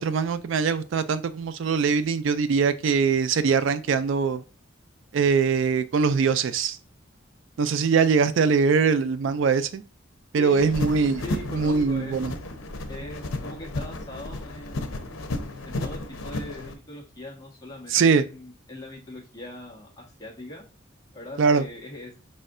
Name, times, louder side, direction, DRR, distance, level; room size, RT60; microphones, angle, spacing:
voice 1, 0.0-4.4 5.1-6.8 7.6-9.8 10.3-11.2 11.5-12.3 17.9-18.2 21.4-21.6, right 5 dB, 65° right, 0.3 m, -22 dB
voice 2, 10.4-10.7 11.2-12.2 12.9-15.1 15.7-20.6 21.1-22.2, left 1 dB, 20° left, 1.2 m, -40 dB
sound 1, 10.6-16.7, left 2 dB, 85° left, 0.7 m, -33 dB
5.1 x 4.1 x 2.5 m
head